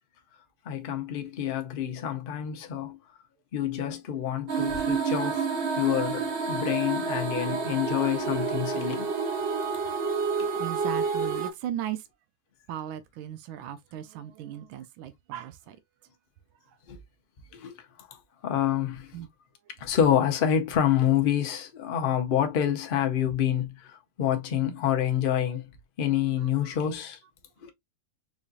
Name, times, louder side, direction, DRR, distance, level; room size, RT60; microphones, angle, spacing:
voice 1, 0.6-3.0 3.5-5.5 5.8-9.1 10.4-10.5 16.9-17.0 17.5-17.8 18.4-19.1 19.8-25.6 26.0-27.2 27.6-27.7, left 10 dB, 60° left, 0.5 m, -27 dB
sound 1, 4.5-11.5, right 5 dB, 50° right, 0.7 m, -29 dB
voice 2, 10.5-12.0 12.7-15.8 19.1-19.3 26.4-26.8, right 11 dB, 85° right, 1.4 m, -37 dB
4.9 x 2.7 x 2.4 m
omnidirectional pair, 2.1 m